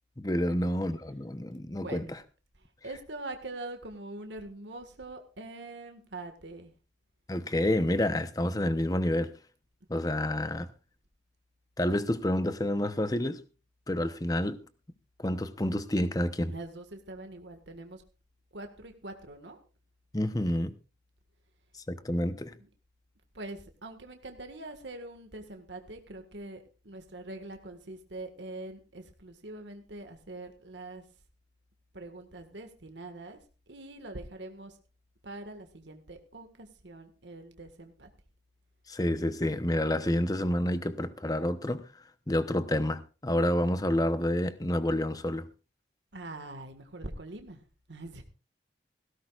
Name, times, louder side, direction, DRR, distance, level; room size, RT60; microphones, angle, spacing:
voice 1, 0.2-2.2 7.3-9.3 9.9-10.7 11.8-13.4 13.9-14.6 15.2-16.5 20.1-20.7 21.9-22.5 38.9-41.9 42.3-45.4, left 1 dB, 20° left, 0.9 m, -29 dB
voice 2, 1.8-2.1 2.8-6.7 16.5-18.0 18.5-19.6 23.4-31.0 31.9-33.4 33.7-34.7 35.2-38.1 46.1-47.6 47.9-48.2, right 2 dB, 85° right, 1.8 m, -43 dB
18.0 x 16.5 x 2.5 m
head